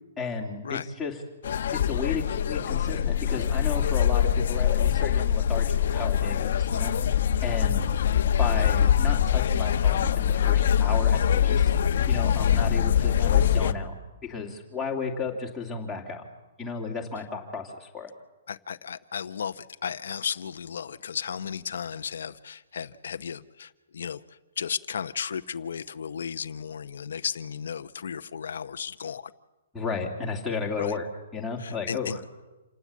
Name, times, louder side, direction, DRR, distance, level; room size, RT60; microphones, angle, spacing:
voice 1, 0.2-1.2 1.7-7.0 7.4-7.9 8.4-11.7 12.1-13.9 14.2-16.2 16.6-18.1 29.7-31.1 31.3-32.2, left 4 dB, 5° left, -3 dB, 2.6 m, -33 dB
sound 1, 1.4-13.7, left 9 dB, 50° left, 1.1 m, -23 dB
voice 2, 18.5-24.2 24.6-29.3 30.8-31.0 31.6-32.2, left 7 dB, 70° left, 10 dB, 0.8 m, -34 dB
27.5 x 18.5 x 8.4 m, 1.1 s
hypercardioid pair, 175°, 0 cm